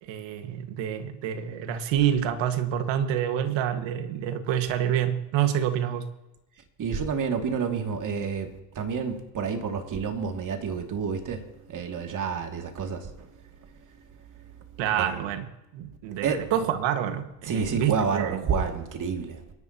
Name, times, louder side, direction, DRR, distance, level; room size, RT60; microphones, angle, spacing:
voice 1, 0.0-6.1 14.8-15.5 15.7-18.4, right 10 dB, 60° right, 1.9 m, -27 dB
voice 2, 6.8-13.3 15.0-15.3 16.2-16.5 17.4-19.5, right 6 dB, 40° right, 2.7 m, -29 dB
27.5 x 11.0 x 3.0 m
supercardioid pair, 95°, 50 cm